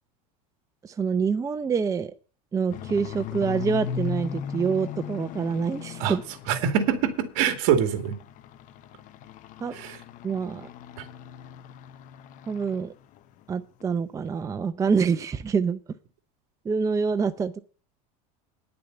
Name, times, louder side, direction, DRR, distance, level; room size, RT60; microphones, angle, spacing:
voice 1, 0.8-2.1 2.5-6.2 9.6-9.7 10.2-10.7 12.5-12.9 13.5-15.8 16.6-17.6, right 5 dB, 15° right, 0.6 m, -26 dB
sound 1, 2.7-7.3 7.6-12.9 13.1-13.4 13.8-13.9 14.3-14.4, left 8 dB, 45° left, 0.9 m, -38 dB
voice 2, 6.5-8.2 9.7-10.0 11.0-11.1, right 8 dB, 65° right, 2.1 m, -24 dB
10.0 x 6.8 x 7.9 m
supercardioid pair, 130°, 18 cm